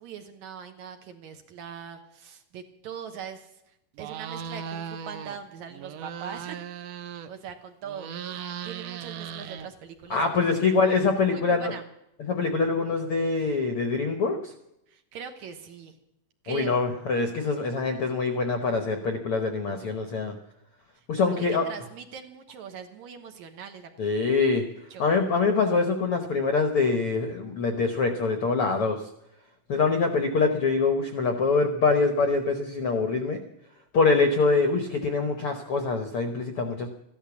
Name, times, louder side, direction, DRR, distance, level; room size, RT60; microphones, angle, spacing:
voice 1, 0.0-6.6 7.2-8.1 8.6-10.7 11.3-11.8 14.9-16.0 16.4-16.8 21.0-24.3 24.9-25.1, right 7 dB, 65° right, 6 dB, 2.2 m, -41 dB
sound 1, 4.0-5.4 5.7-7.5 7.8-10.1, right 8 dB, 80° right, 1.5 m, -37 dB
voice 2, 10.1-11.7 12.2-14.5 16.5-20.3 21.1-21.6 24.0-24.6 25.0-29.0 29.7-33.4 33.9-36.9, left 4 dB, 70° left, 6 dB, 1.3 m, -24 dB
14.5 x 12.0 x 7.1 m, 0.84 s
omnidirectional pair, 4.0 m